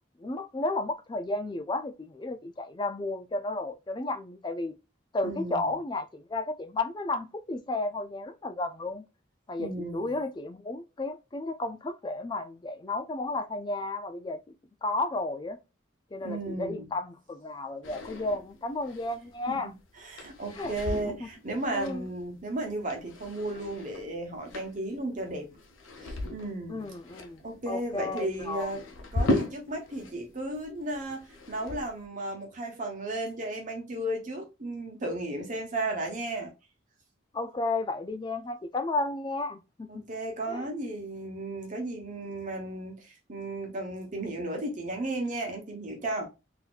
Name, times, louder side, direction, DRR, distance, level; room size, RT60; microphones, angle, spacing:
voice 1, 0.2-4.7 5.1-9.1 9.5-14.4 14.8-15.6 16.1-19.7 20.5-21.3 21.7-22.1 26.7-28.7 37.3-40.0 40.5-40.7, left 2 dB, 20° left, 0.4 m, -33 dB
voice 2, 5.2-5.7 9.6-10.2 16.2-16.9 19.5-19.7 20.0-25.5 26.0-26.8 27.4-28.8 29.1-36.5 39.9-46.3, right 1 dB, 40° right, 1.0 m, -34 dB
sound 1, 17.8-30.1 30.4-32.0, left 1 dB, 80° left, 0.8 m, -37 dB
4.0 x 2.8 x 2.4 m
head